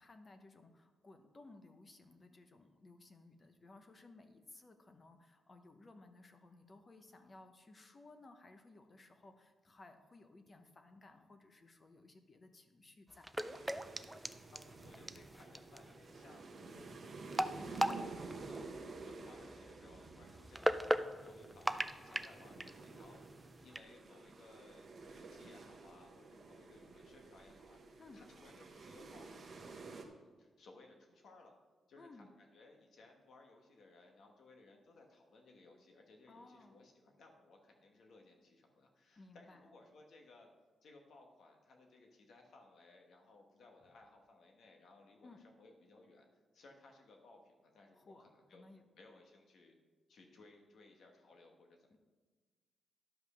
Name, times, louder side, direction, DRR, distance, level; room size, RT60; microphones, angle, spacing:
voice 1, 0.0-13.3 28.0-28.2 32.0-32.3 36.3-36.8 39.2-39.7 45.2-45.4 47.9-48.8 51.9-52.0, left 2 dB, 25° left, 7 dB, 0.8 m, -59 dB
sound 1, 13.1-23.8, equal, 5° right, 0.3 m, -40 dB
sound 2, 13.4-30.0, right 3 dB, 35° right, 1.0 m, -52 dB
voice 2, 14.5-23.2 23.6-31.5 31.9-40.5 40.8-46.3 46.5-48.6 49.0-49.8 50.1-52.0, left 2 dB, 55° left, 2 dB, 1.5 m, -61 dB
sound 3, 14.5-15.6 16.2-18.6 19.5-20.6, right 6 dB, 85° right, 0.7 m, -54 dB
11.0 x 5.5 x 6.3 m, 1.3 s
wide cardioid pair, 175°, 0 cm